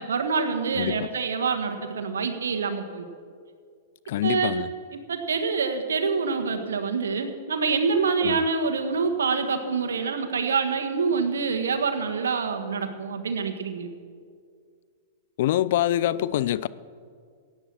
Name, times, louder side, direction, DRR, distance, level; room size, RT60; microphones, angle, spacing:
voice 1, 0.0-3.1 4.2-4.5 5.1-13.9, right 5 dB, 85° right, 1.6 m, -26 dB
voice 2, 0.8-1.1 4.1-4.7 8.2-8.4 15.4-16.7, left 13 dB, 60° left, 0.5 m, -25 dB
16.0 x 9.1 x 7.6 m
hypercardioid pair, 115°, 0 cm